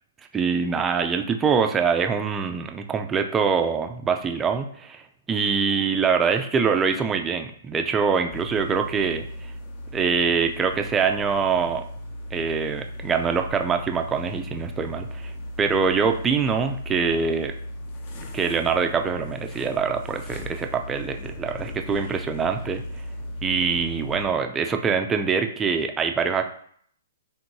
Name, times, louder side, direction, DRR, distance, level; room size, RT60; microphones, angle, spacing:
voice 1, 0.3-5.0 5.3-9.5 9.9-11.8 12.3-15.3 15.6-17.5 18.3-22.8 23.4-26.5, right 5 dB, 15° right, 6 dB, 0.4 m, -24 dB
sound 1, 8.3-24.2, left 1 dB, 40° left, 0.8 m, -36 dB
3.5 x 2.6 x 4.5 m, 0.62 s
hypercardioid pair, 130°, 0 cm